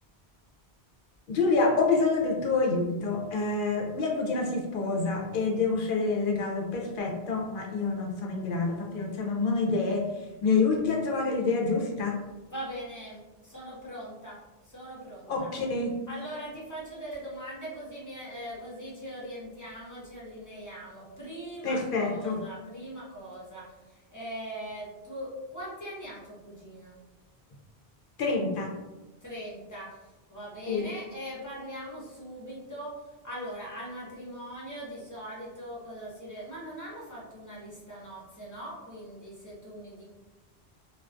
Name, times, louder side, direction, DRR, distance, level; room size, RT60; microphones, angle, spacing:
voice 1, 1.3-12.2 15.3-15.9 21.6-22.4 28.2-28.7 30.7-30.9, left 3 dB, 60° left, -1 dB, 0.6 m, -27 dB
voice 2, 12.5-14.4 14.6-15.5 16.1-27.0 29.2-40.0, equal, 20° left, -6 dB, 0.6 m, -41 dB
2.3 x 2.2 x 2.4 m, 1.1 s
omnidirectional pair, 1.1 m